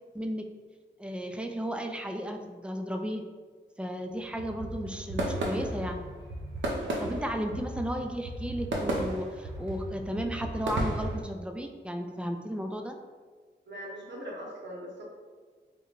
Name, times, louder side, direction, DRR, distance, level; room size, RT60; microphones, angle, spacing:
voice 1, 0.1-0.5 1.0-3.2 3.8-6.1 7.0-13.0, equal, 5° right, 4 dB, 0.4 m, -34 dB
sound 1, 4.2-11.2, right 1 dB, 85° right, 0.5 m, -34 dB
voice 2, 13.7-15.0, equal, 70° right, -3 dB, 0.9 m, -40 dB
3.7 x 2.2 x 3.0 m, 1.5 s
cardioid pair, 50°, 19 cm